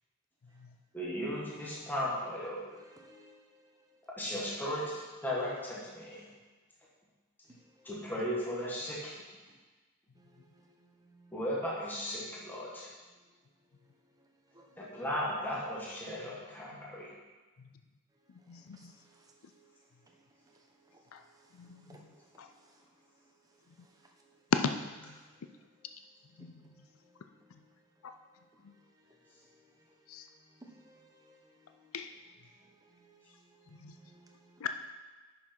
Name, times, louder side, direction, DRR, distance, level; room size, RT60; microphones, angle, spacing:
voice 1, 0.9-2.6 4.2-6.3 7.8-9.2 11.3-12.9 14.8-17.1, equal, 10° left, -6 dB, 1.6 m, -36 dB
voice 2, 3.0-3.4 10.2-10.4 10.8-11.3 14.5-14.6 21.9-22.0 30.8-31.1 32.9-33.1 33.7-34.6, right 1 dB, 15° right, 1 dB, 1.1 m, -59 dB
voice 3, 18.5-18.9 21.1-21.2 21.5-22.1 22.4-22.5 25.0-25.2 26.4-26.5 28.0-28.1 30.1-30.3 31.9-32.1 33.8-33.9 34.6-34.7, left 9 dB, 70° left, 7 dB, 0.5 m, -43 dB
10.5 x 6.1 x 4.4 m, 1.3 s
head